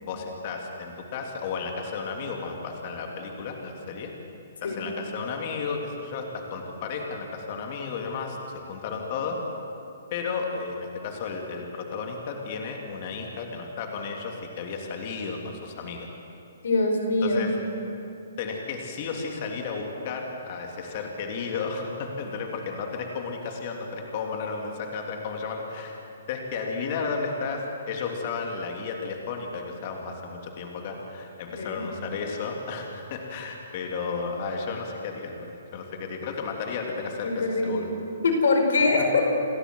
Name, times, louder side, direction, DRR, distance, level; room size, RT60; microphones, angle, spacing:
voice 1, 0.0-4.1 4.6-8.4 8.7-9.4 10.1-16.1 17.2-17.5 18.4-26.0 26.3-37.9, left 5 dB, 45° left, 2 dB, 3.0 m, -33 dB
voice 2, 16.6-17.4 31.6-31.8 37.2-37.8 38.2-39.3, left 3 dB, 70° left, 3 dB, 5.0 m, -23 dB
28.5 x 13.0 x 7.9 m, 2.7 s
hypercardioid pair, 135°, 0 cm